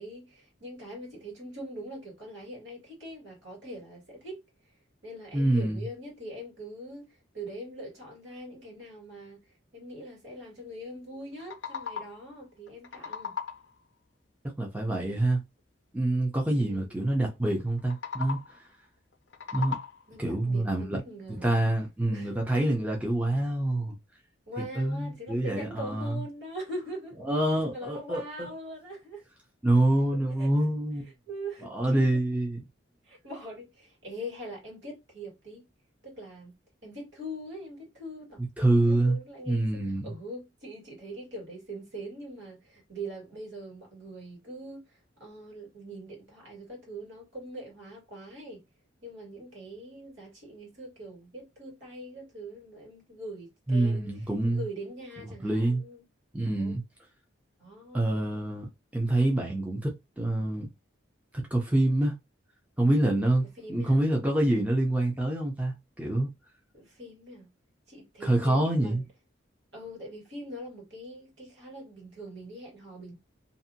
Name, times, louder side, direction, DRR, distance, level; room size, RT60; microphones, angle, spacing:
voice 1, 0.0-4.4 5.0-9.4 9.7-13.4 16.5-16.9 20.1-21.6 22.1-22.3 24.5-27.2 27.7-29.3 30.4-30.5 31.3-32.2 33.0-35.7 36.0-48.6 49.0-56.0 56.4-56.8 57.6-58.0 63.6-64.0 66.7-67.5 67.9-69.0 69.7-73.2, right 1 dB, 75° right, 1.8 m, -42 dB
voice 2, 5.3-5.8 14.6-15.4 15.9-18.6 19.5-19.8 20.2-21.0 21.3-23.9 24.6-26.2 27.2-28.5 29.6-31.1 31.6-32.6 38.6-39.2 39.5-40.1 53.7-54.6 55.4-55.8 56.3-56.8 57.9-60.7 61.3-62.1 62.8-66.3 68.2-69.0, right 1 dB, 10° right, 0.6 m, -26 dB
sound 1, 11.2-12.3 12.7-13.8 17.8-18.7 19.1-20.2, left 6 dB, 70° left, 0.5 m, -38 dB
2.7 x 2.5 x 2.7 m
head